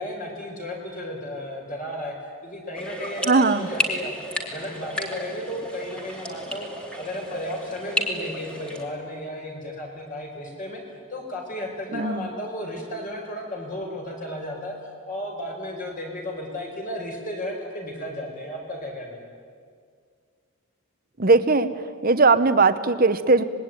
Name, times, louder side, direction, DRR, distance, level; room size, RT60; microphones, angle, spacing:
voice 1, 0.0-2.2 2.4-4.1 4.5-6.7 7.0-10.8 11.1-14.7 15.1-19.2, left 1 dB, 35° left, 0 dB, 5.3 m, -34 dB
sound 1, 2.7-8.8, equal, 5° left, 2.5 m, -32 dB
voice 2, 3.2-3.7 11.9-12.3 21.2-21.7 22.0-23.4, right 3 dB, 40° right, 11 dB, 1.0 m, -19 dB
25.5 x 21.0 x 9.3 m, 2.1 s
head